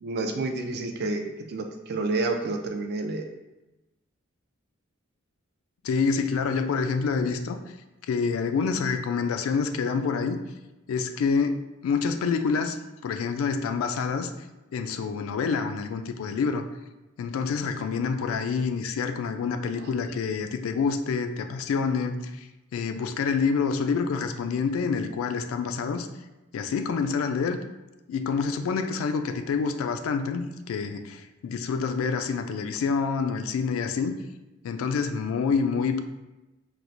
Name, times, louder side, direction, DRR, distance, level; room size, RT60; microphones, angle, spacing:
voice 1, 0.0-3.3, right 3 dB, 50° right, 5 dB, 0.4 m, -29 dB
voice 2, 5.8-7.6 8.1-10.4 10.9-11.6 11.8-12.8 13.0-14.3 14.7-16.6 17.2-26.1 26.5-27.6 28.1-34.2 34.6-36.0, left 5 dB, 85° left, 9 dB, 0.3 m, -27 dB
4.3 x 2.0 x 2.5 m, 1.0 s
head